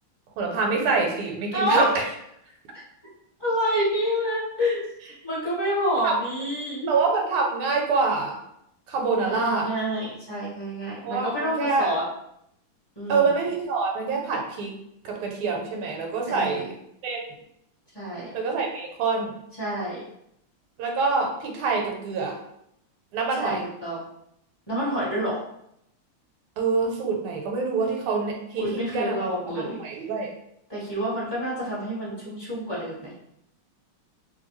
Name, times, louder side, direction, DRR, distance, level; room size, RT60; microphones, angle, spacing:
voice 1, 0.4-2.0 6.0-6.1 6.9-8.4 8.9-9.7 11.0-11.9 13.1-14.7 15.0-16.7 17.0-17.2 18.3-19.3 20.8-22.4 23.1-23.6 26.6-29.1 29.6-30.3, right 4 dB, 90° right, 1 dB, 1.5 m, -26 dB
voice 2, 1.5-1.9 3.4-4.8 5.2-6.9 9.2-12.0 13.0-13.3 16.3-16.7 17.9-18.3 19.6-20.0 23.4-24.0 24.7-25.4 28.6-29.8 30.7-33.1, equal, 20° left, -9 dB, 0.8 m, -27 dB
3.1 x 2.6 x 3.0 m, 0.77 s
omnidirectional pair, 2.3 m